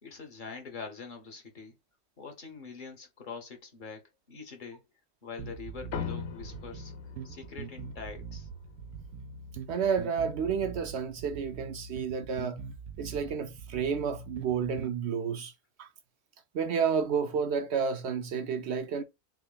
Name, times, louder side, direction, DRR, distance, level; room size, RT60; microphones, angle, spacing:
voice 1, 0.0-1.7 2.2-4.0 4.3-4.8 5.2-6.9 7.2-8.5, left 5 dB, 40° left, 1.0 m, -44 dB
sound 1, 5.4-15.0, right 6 dB, 80° right, 1.0 m, -43 dB
sound 2, 5.9-10.7, left 7 dB, 60° left, 0.8 m, -42 dB
voice 2, 9.7-12.7 13.0-15.5 15.8-15.9 16.5-19.0, right 6 dB, 60° right, 0.7 m, -30 dB
6.1 x 2.1 x 2.2 m
omnidirectional pair, 1.5 m